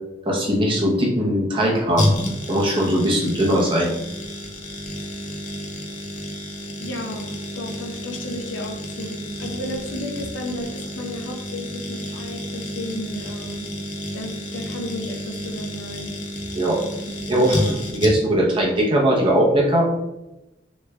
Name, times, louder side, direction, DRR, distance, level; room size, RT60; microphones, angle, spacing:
voice 1, 0.2-2.1 2.5-3.9 16.5-16.8 17.3-17.6 17.9-19.8, right 1 dB, 30° right, -3 dB, 0.7 m, -20 dB
sound 1, 2.0-18.5 18.7-18.8, left 1 dB, 40° left, 0.5 m, -30 dB
voice 2, 6.8-13.7 14.1-16.1 17.0-17.8, left 1 dB, 85° left, 3 dB, 0.6 m, -33 dB
3.1 x 2.3 x 3.2 m, 0.94 s
head